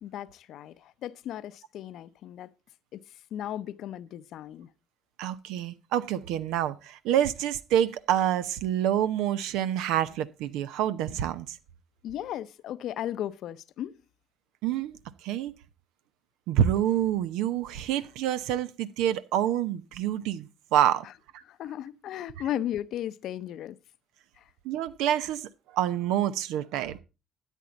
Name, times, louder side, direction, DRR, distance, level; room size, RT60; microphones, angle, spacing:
voice 1, 0.0-2.5 2.9-4.7 12.0-14.0 21.4-23.8 24.4-24.5, left 11 dB, 70° left, 0.6 m, -36 dB
voice 2, 5.2-11.6 14.6-15.0 15.2-15.5 16.5-21.1 24.6-27.0, right 11 dB, 80° right, 0.8 m, -27 dB
13.0 x 9.2 x 4.0 m
hypercardioid pair, 55°, 0 cm